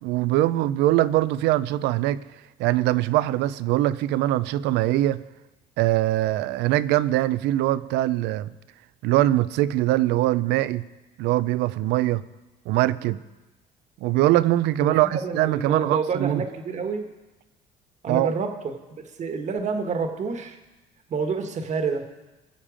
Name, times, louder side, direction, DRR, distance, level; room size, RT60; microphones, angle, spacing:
voice 1, 0.0-2.2 2.6-5.2 5.8-8.5 9.0-10.8 11.2-12.2 12.7-13.2 14.0-16.4 18.1-18.3, right 15 dB, 90° right, 0.5 m, -22 dB
voice 2, 14.8-17.1 18.0-18.8 19.2-20.6 21.1-22.1, right 5 dB, 45° right, 1.4 m, -28 dB
20.5 x 7.3 x 5.0 m
cardioid pair, 110°, 17 cm